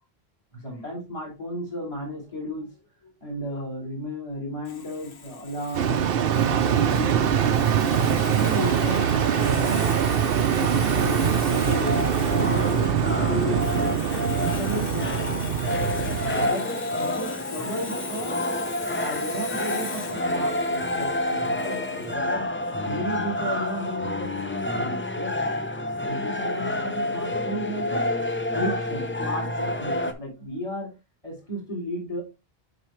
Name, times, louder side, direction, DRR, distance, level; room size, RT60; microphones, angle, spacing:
voice 1, 0.5-2.7 3.0-5.9 6.5-7.3 7.8-9.0 10.5-12.0 12.3-13.9 14.6-15.1 16.4-18.6 19.0-22.5 22.8-25.3 26.0-28.0 28.5-30.9 31.2-32.2, equal, 30° left, -2 dB, 3.3 m, -34 dB
Sawing, 4.6-22.1, left 5 dB, 60° left, 1.1 m, -40 dB
sound 1, 5.7-16.5, right 8 dB, 65° right, 0.8 m, -23 dB
sound 2, 11.5-30.1, left 1 dB, 15° left, 0.5 m, -29 dB
7.8 x 5.0 x 3.1 m, 0.26 s
omnidirectional pair, 1.1 m